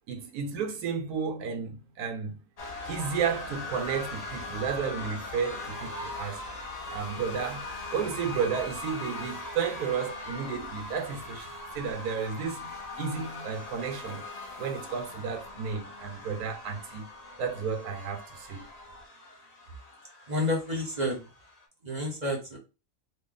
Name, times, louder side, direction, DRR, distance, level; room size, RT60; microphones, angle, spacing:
voice 1, 0.1-2.4 2.9-6.4 6.9-7.6 7.9-11.5 11.7-14.3 14.6-17.0 17.4-18.7, right 6 dB, 85° right, 1.2 m, -32 dB
sound 1, 2.6-21.6, left 2 dB, 40° left, 0.6 m, -40 dB
voice 2, 20.3-21.2 21.8-22.6, left 1 dB, 35° right, 0.8 m, -29 dB
3.1 x 2.2 x 3.7 m
omnidirectional pair, 1.6 m